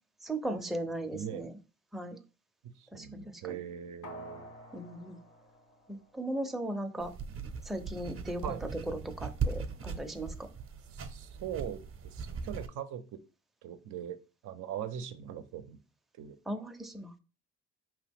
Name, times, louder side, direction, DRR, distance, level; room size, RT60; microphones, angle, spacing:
voice 1, 0.2-1.5 1.9-2.2 2.9-3.5 4.7-5.2 5.9-7.1 7.6-8.4 8.9-10.5 16.5-17.2, right 1 dB, ahead, 5 dB, 0.5 m, -37 dB
voice 2, 1.1-1.5 2.7-4.5 8.4-8.6 10.9-13.2 13.6-14.2 14.4-15.8 16.2-16.4, right 9 dB, 80° right, 10 dB, 0.6 m, -41 dB
sound 1, 4.0-6.6 6.9-7.0, equal, 80° left, 1.5 m, -50 dB
sound 2, 7.0-12.7, right 5 dB, 45° right, 0.7 m, -39 dB
4.8 x 3.0 x 3.4 m, 0.33 s
cardioid pair, 90°, 30 cm